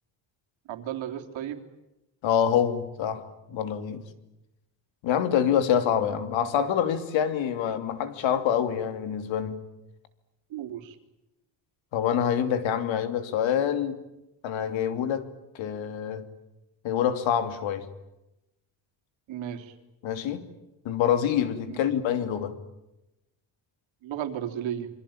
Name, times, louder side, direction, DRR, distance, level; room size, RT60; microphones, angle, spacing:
voice 1, 0.7-1.6 10.5-11.0 19.3-19.7 21.7-21.8 24.0-24.9, right 10 dB, 85° right, 5 dB, 3.4 m, -34 dB
voice 2, 2.2-4.0 5.0-9.6 11.9-14.0 14.4-15.3 15.5-16.3 16.8-17.9 20.0-20.4 20.8-22.6, left 9 dB, 80° left, 11 dB, 3.0 m, -26 dB
28.0 x 24.5 x 8.7 m, 0.93 s
cardioid pair, 180°, 46 cm